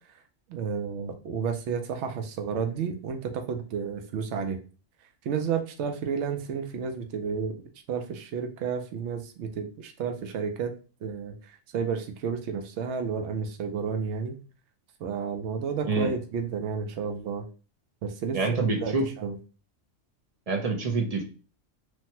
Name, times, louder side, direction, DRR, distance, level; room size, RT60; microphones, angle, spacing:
voice 1, 0.5-4.6 5.2-7.6 7.9-10.7 11.0-14.4 15.0-17.5 18.0-19.3, right 6 dB, 70° right, 5 dB, 0.8 m, -31 dB
voice 2, 18.3-19.1 20.5-21.2, right 3 dB, 50° right, 2 dB, 0.4 m, -26 dB
3.1 x 2.1 x 2.8 m, 0.36 s
omnidirectional pair, 1.3 m